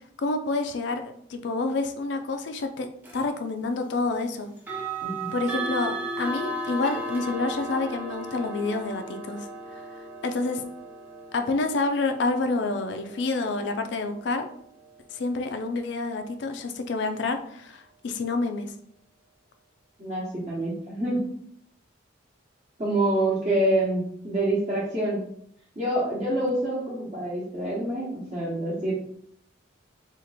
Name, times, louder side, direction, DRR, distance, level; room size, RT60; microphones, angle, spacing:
voice 1, 0.2-2.9 3.1-4.5 5.3-10.6 11.3-14.5 15.1-18.7 26.6-26.7, left 3 dB, 60° left, 6 dB, 0.4 m, -28 dB
sound 1, 3.0-3.3 4.6-15.4, right 2 dB, 10° right, 0.6 m, -36 dB
voice 2, 20.0-21.2 22.8-25.2 25.8-28.9, right 1 dB, 30° right, -9 dB, 0.9 m, -26 dB
2.9 x 2.4 x 3.9 m, 0.66 s
head